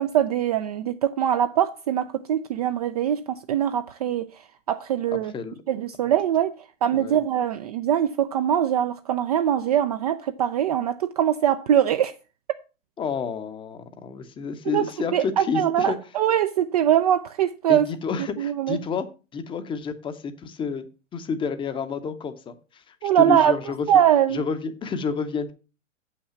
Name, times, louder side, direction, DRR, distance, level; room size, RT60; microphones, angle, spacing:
voice 1, 0.0-4.3 4.7-5.3 5.7-6.5 6.8-12.1 14.7-17.9 18.4-18.8 23.0-23.5 23.9-24.4, right 10 dB, 35° right, 0.4 m, -22 dB
voice 2, 13.0-16.0 17.7-19.1 19.3-20.9 21.1-23.9 24.3-25.5, left 5 dB, 15° left, 0.7 m, -29 dB
7.8 x 5.8 x 5.6 m
figure-of-eight pair, 110°, 38 cm